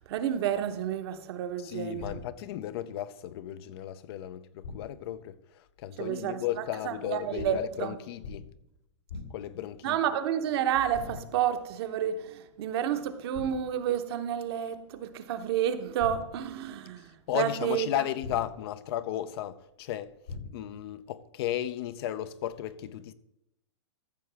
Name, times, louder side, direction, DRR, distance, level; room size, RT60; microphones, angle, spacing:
voice 1, 0.1-2.2 6.0-6.4 6.8-7.9 9.8-17.9, right 9 dB, 55° right, 0.9 m, -30 dB
voice 2, 1.6-8.5 9.3-10.0 17.3-20.1 20.5-23.1, left 12 dB, 55° left, 0.6 m, -35 dB
sound 1, 2.0-2.6 4.6-5.1 7.4-7.8 8.2-8.7 9.1-9.6 10.9-11.5 13.3-13.8 16.0-16.6 18.2-18.8 20.3-20.8, left 4 dB, 85° left, 4.2 m, -42 dB
14.0 x 6.5 x 3.4 m
hypercardioid pair, 130°, 15 cm